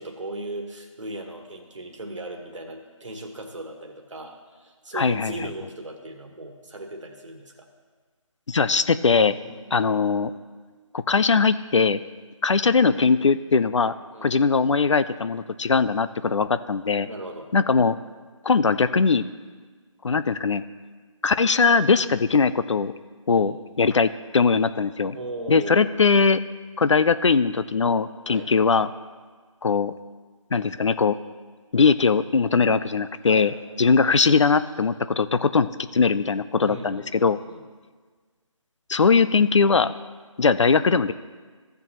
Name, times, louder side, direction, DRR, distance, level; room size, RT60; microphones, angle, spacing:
voice 1, 0.0-7.7 9.4-9.9 14.1-14.4 17.0-17.5 23.3-23.5 25.1-25.9 28.3-28.5 33.3-33.5 36.6-37.6, right 1 dB, 65° right, 3 dB, 1.5 m, -37 dB
voice 2, 4.9-5.3 8.5-9.4 9.7-10.3 10.9-12.0 12.4-13.9 14.2-17.1 17.5-18.0 18.4-19.2 20.0-20.6 21.2-22.9 23.3-25.2 25.5-26.4 26.8-28.9 29.6-29.9 30.5-31.2 31.7-33.5 33.8-37.4 38.9-39.9 40.4-41.1, left 5 dB, 60° left, 14 dB, 0.5 m, -20 dB
15.5 x 6.7 x 3.0 m, 1.5 s
figure-of-eight pair, 165°, 17 cm